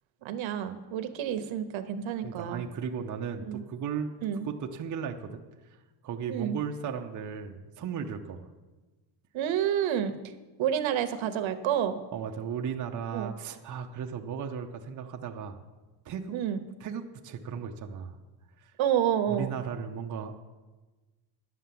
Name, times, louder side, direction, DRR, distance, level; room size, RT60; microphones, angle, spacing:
voice 1, 0.2-2.6 3.5-3.6 4.2-4.5 6.3-6.6 9.3-10.1 10.6-12.0 13.1-13.3 16.3-16.6 18.8-19.5, right 9 dB, 75° right, 10 dB, 1.0 m, -29 dB
voice 2, 2.2-4.2 4.4-5.4 6.0-8.4 12.1-15.6 16.0-16.4 16.8-18.1 18.6-18.7 19.3-20.4, right 7 dB, 40° right, 3 dB, 0.7 m, -36 dB
11.0 x 6.9 x 7.6 m, 1.2 s
cardioid pair, 170°, 47 cm